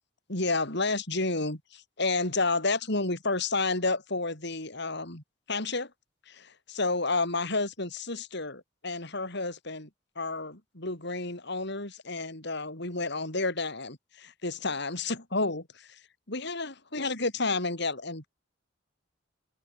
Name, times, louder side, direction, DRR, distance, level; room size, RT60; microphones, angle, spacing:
voice 1, 0.3-5.9 6.3-9.9 10.2-15.9 16.3-18.3, left 3 dB, 65° left, 5.9 m, -31 dB
head